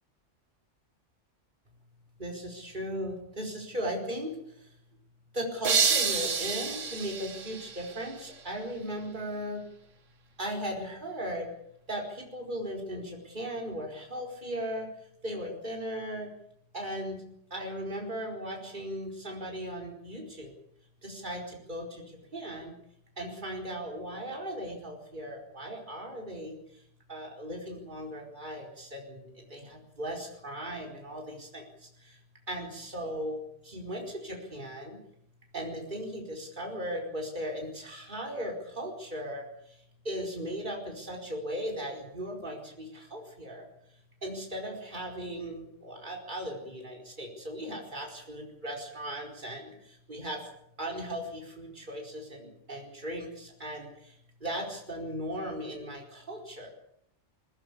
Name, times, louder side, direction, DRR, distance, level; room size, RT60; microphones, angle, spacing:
voice 1, 2.2-4.7 5.3-9.6 10.4-11.5 11.9-14.9 15.2-16.3 16.7-17.2 17.5-20.5 21.0-22.0 22.3-22.7 23.2-26.8 27.1-32.2 32.5-35.0 35.5-39.8 40.0-43.7 44.2-50.5 50.8-56.7, equal, 40° right, 0 dB, 4.8 m, -37 dB
sound 1, 5.6-8.4, right 5 dB, 90° right, 1.9 m, -29 dB
21.0 x 18.5 x 8.5 m, 0.74 s
omnidirectional pair, 1.3 m